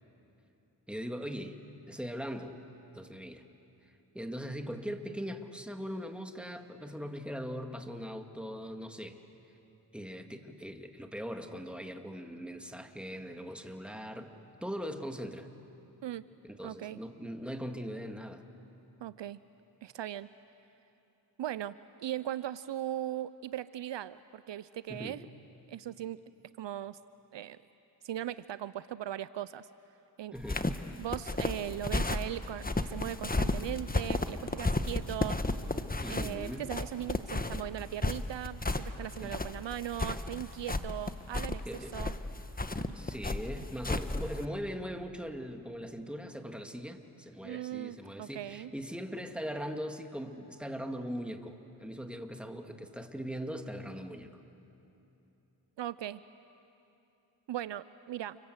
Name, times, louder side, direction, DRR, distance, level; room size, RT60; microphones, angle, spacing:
voice 1, 0.9-1.6 1.9-2.5 2.9-3.4 3.8-9.2 9.9-14.3 14.6-15.5 16.4-18.4 24.9-25.2 30.3-30.6 36.0-36.7 39.2-39.4 41.7-41.9 42.9-54.3, equal, ahead, 4 dB, 2.3 m, -40 dB
voice 2, 16.6-17.0 19.0-19.4 19.8-20.3 21.4-25.2 25.7-26.2 26.6-27.0 27.3-27.6 28.0-29.7 30.2-30.3 31.0-35.4 36.1-41.6 41.9-42.1 47.4-48.7 55.8-56.2 57.5-58.4, right 12 dB, 70° right, 16 dB, 0.6 m, -38 dB
sound 1, 30.4-44.5, left 2 dB, 20° left, 1.3 m, -33 dB
29.0 x 24.5 x 8.1 m, 2.9 s
cardioid pair, 50°, 46 cm